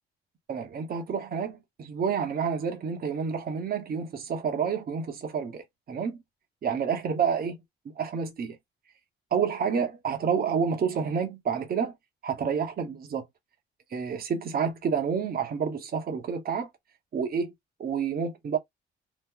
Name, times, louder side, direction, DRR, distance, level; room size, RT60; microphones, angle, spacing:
voice 1, 0.5-6.2 6.6-7.6 8.0-8.6 9.3-11.9 12.2-13.3 13.9-16.7 17.1-17.5 17.8-18.6, right 6 dB, 50° right, 1.0 m, -29 dB
3.0 x 2.1 x 3.7 m
cardioid pair, 90°, 20 cm